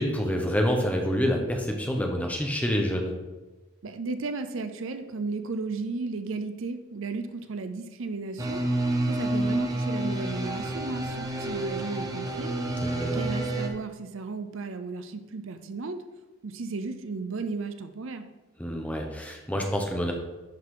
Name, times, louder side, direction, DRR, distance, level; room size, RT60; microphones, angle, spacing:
voice 1, 0.0-3.1 12.8-13.3 18.6-20.1, equal, 5° left, 2 dB, 0.9 m, -27 dB
voice 2, 3.8-8.6 9.1-12.5 13.1-16.0 16.4-18.3, right 3 dB, 65° right, 9 dB, 0.6 m, -34 dB
sound 1, 8.4-13.7, right 1 dB, 15° right, 0.7 m, -29 dB
11.5 x 4.0 x 4.8 m, 1.1 s
head